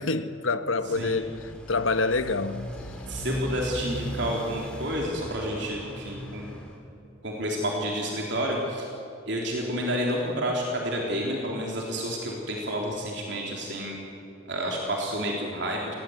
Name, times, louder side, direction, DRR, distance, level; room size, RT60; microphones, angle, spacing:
voice 1, 0.0-2.7, left 3 dB, 90° left, 1.2 m, -27 dB
Motorcycle, 0.8-6.8, equal, 5° left, 3.5 m, -37 dB
voice 2, 3.1-6.5 7.2-8.9 9.3-14.0 14.5-15.9, equal, 60° right, 3.7 m, -30 dB
26.5 x 19.0 x 9.4 m
head